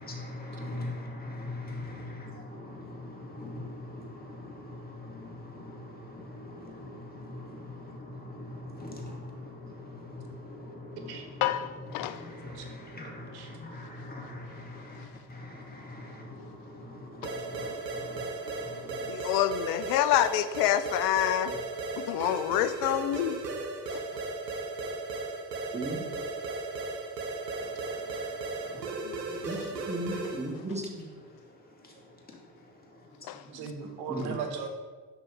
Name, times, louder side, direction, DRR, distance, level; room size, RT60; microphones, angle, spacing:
voice 1, 0.0-11.4 11.9-18.3 18.6-19.1 28.7-28.9 29.2-29.8 33.5-33.7, left 2 dB, 20° left, 2.3 m, -42 dB
voice 2, 11.4-12.2 19.1-21.5 22.0-23.4 29.0-29.2 33.3-33.4, left 12 dB, 50° left, 0.5 m, -27 dB
voice 3, 12.4-13.5 29.5-29.6 33.5-34.7, right 6 dB, 55° right, 1.3 m, -39 dB
sound 1, 17.2-30.6, right 3 dB, 85° right, 0.9 m, -36 dB
voice 4, 25.7-26.1 29.4-29.6 29.9-31.1 34.1-34.4, right 1 dB, 15° right, 1.3 m, -35 dB
6.2 x 5.3 x 5.1 m
figure-of-eight pair, 50°, 48 cm